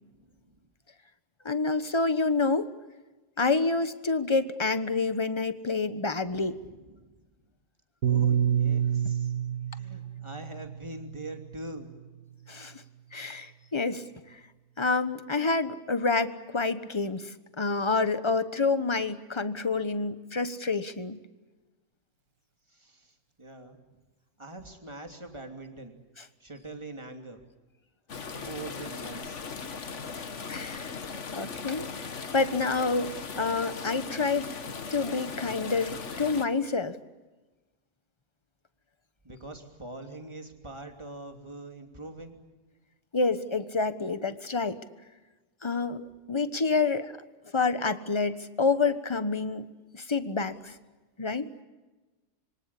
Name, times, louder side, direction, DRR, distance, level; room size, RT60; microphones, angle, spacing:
voice 1, 0.1-0.7 6.3-7.1 8.0-9.3 9.7-11.9 22.7-23.8 24.4-26.0 26.4-27.4 28.3-30.0 39.2-42.4, right 2 dB, 20° right, 4 dB, 2.9 m, -43 dB
voice 2, 1.4-2.7 3.4-6.6 12.5-12.8 13.1-14.0 14.3-14.4 14.8-21.2 30.5-31.0 31.3-34.5 34.9-37.0 43.1-44.8 45.6-47.1 47.5-49.7 49.9-50.7 51.2-51.5, left 4 dB, 20° left, 11 dB, 1.1 m, -28 dB
Piano, 8.0-12.5, right 9 dB, 70° right, 1.8 m, -29 dB
sound 1, 28.1-36.5, left 5 dB, 50° left, 1.7 m, -38 dB
26.5 x 24.0 x 8.4 m, 1.2 s
omnidirectional pair, 1.7 m